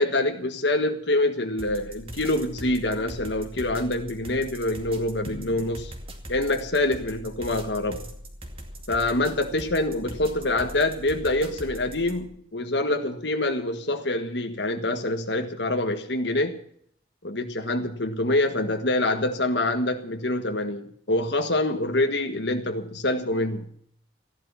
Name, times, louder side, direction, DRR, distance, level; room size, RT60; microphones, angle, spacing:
voice 1, 0.0-5.9 6.3-8.0 8.9-16.6 17.2-23.7, left 2 dB, 75° left, 5 dB, 1.6 m, -26 dB
sound 1, 1.6-12.3, equal, 30° right, 2.4 m, -41 dB
15.0 x 11.5 x 7.1 m, 0.63 s
head